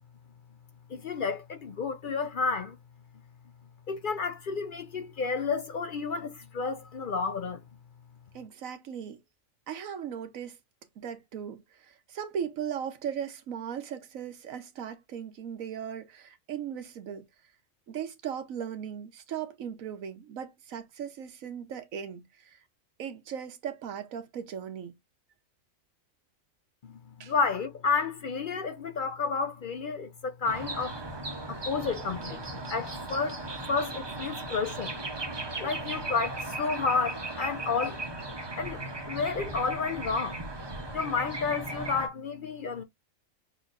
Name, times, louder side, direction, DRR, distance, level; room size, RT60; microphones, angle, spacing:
voice 1, 0.9-2.8 3.9-7.6 26.8-31.0 31.5-33.4 33.7-34.9 35.6-38.0 38.6-40.4 40.9-42.8, left 5 dB, 55° left, 0.6 m, -31 dB
voice 2, 8.3-9.2 9.7-10.6 11.0-11.6 11.9-17.3 17.9-22.6 23.0-24.9 27.2-27.3, right 8 dB, 85° right, 1.3 m, -38 dB
sound 1, 30.4-42.1, right 2 dB, 25° right, 0.8 m, -37 dB
6.4 x 3.0 x 2.5 m
omnidirectional pair, 1.4 m